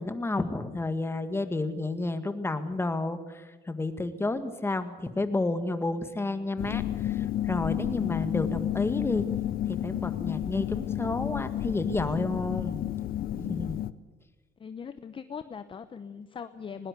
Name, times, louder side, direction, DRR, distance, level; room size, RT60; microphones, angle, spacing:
voice 1, 0.0-9.2 9.7-12.9 13.3-13.8, left 2 dB, 15° left, 9 dB, 1.8 m, -31 dB
sound 1, 6.6-13.9, left 12 dB, 60° left, 0.8 m, -31 dB
voice 2, 14.6-16.9, left 6 dB, 30° left, 11 dB, 0.8 m, -40 dB
20.0 x 18.5 x 8.3 m, 1.2 s
cardioid pair, 110°, 17 cm